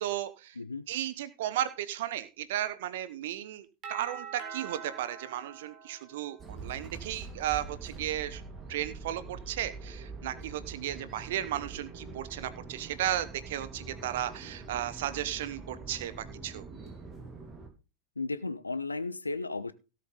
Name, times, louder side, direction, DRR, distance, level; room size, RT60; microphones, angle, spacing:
voice 1, 0.0-0.6 0.9-8.4 8.7-16.6, right 12 dB, 55° right, 14 dB, 0.9 m, -35 dB
Doorbell, 3.8-6.7, right 7 dB, 35° right, 4.0 m, -44 dB
sound 1, 6.4-17.7, right 4 dB, 20° right, 3.7 m, -44 dB
voice 2, 18.2-19.7, left 3 dB, 80° left, 15 dB, 1.0 m, -34 dB
17.0 x 7.7 x 3.8 m, 0.31 s
figure-of-eight pair, 90°, 0 cm